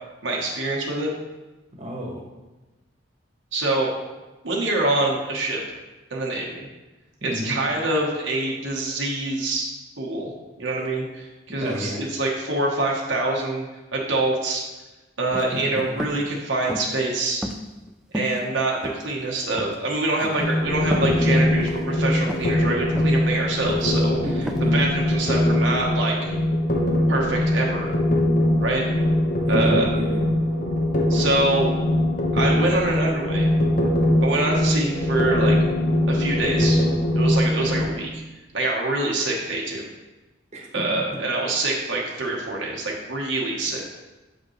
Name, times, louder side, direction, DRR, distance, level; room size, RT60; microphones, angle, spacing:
voice 1, 0.2-1.1 3.5-3.9 4.4-5.6 6.1-6.7 7.3-9.7 10.0-10.3 10.6-13.7 13.9-14.6 15.2-17.4 18.1-24.2 24.7-26.3 27.1-27.9 28.6-28.8 29.5-29.9 31.1-31.7 32.3-33.5 34.2-35.6 36.1-36.8 37.1-38.2 38.5-39.9 40.7-43.8, right 2 dB, 80° right, -2 dB, 1.1 m, -25 dB
voice 2, 1.8-2.2 7.2-7.6 11.6-12.0 15.5-15.6 16.0-16.1 24.2-24.7 29.5-30.2 40.5-40.8, equal, 35° right, -2 dB, 1.2 m, -30 dB
sound 1, 15.3-15.5 16.0-16.2 16.7-17.0 17.4-17.9 18.1-18.4 18.8-19.3 19.5-19.8 20.2-20.4 20.9-21.2 21.6-21.8 22.3-22.5 22.9-23.2 23.7-23.9 24.5-24.6, equal, 5° right, 0.3 m, -32 dB
sound 2, 20.4-37.9, left 1 dB, 45° left, 1.0 m, -22 dB
7.4 x 5.2 x 3.1 m, 1.1 s
head